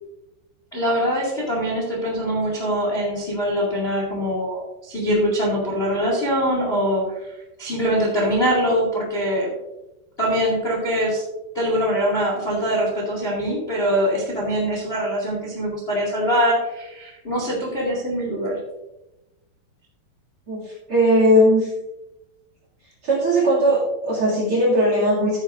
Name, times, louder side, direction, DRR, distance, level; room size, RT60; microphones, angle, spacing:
voice 1, 0.7-9.5 10.2-11.2 11.5-18.6, equal, 30° left, -2 dB, 1.0 m, -23 dB
voice 2, 20.5-21.7 23.0-25.4, equal, 40° right, -3 dB, 2.3 m, -18 dB
12.5 x 9.3 x 2.6 m, 0.96 s
omnidirectional pair, 5.4 m